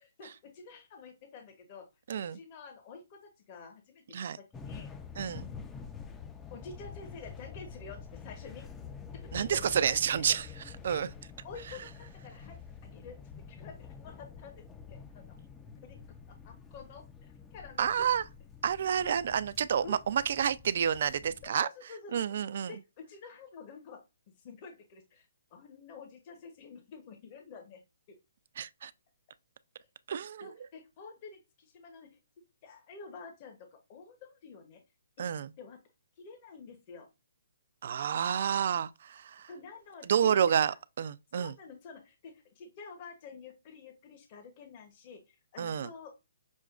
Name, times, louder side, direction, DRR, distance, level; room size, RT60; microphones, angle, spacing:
voice 1, 0.2-1.9 2.1-4.0 4.5-4.9 6.5-8.7 9.2-10.4 10.9-11.0 11.4-13.2 13.5-15.4 15.8-16.0 16.3-18.1 19.0-19.1 19.8-20.0 21.4-22.2 22.7-24.0 24.4-25.3 25.5-27.8 30.4-32.2 32.6-34.8 35.6-35.8 36.2-37.1 39.5-40.8 41.4-46.1, left 4 dB, 35° left, 0.8 m, -49 dB
voice 2, 2.1-2.4 4.1-4.4 5.2-5.5 9.3-10.5 10.8-11.1 11.7-11.8 17.8-18.2 18.6-21.7 22.1-22.8 28.6-28.9 30.1-30.6 35.2-35.5 37.8-39.5 40.0-41.6 45.6-45.9, right 8 dB, 55° right, 0.3 m, -29 dB
sound 1, 4.5-21.5, left 6 dB, 10° left, 0.4 m, -47 dB
6.1 x 2.2 x 2.4 m
hypercardioid pair, 155°, 0 cm